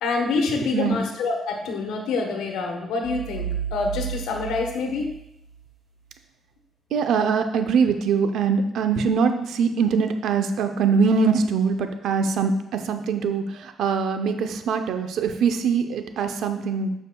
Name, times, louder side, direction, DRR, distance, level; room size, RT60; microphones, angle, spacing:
voice 1, 0.0-5.1, left 3 dB, 90° left, 3 dB, 1.1 m, -26 dB
sound 1, 3.0-5.7, right 8 dB, 50° right, 1.5 m, -33 dB
voice 2, 6.9-16.9, right 5 dB, 75° right, 7 dB, 0.6 m, -23 dB
8.3 x 6.3 x 2.3 m, 0.83 s
cardioid pair, 90°, 0 cm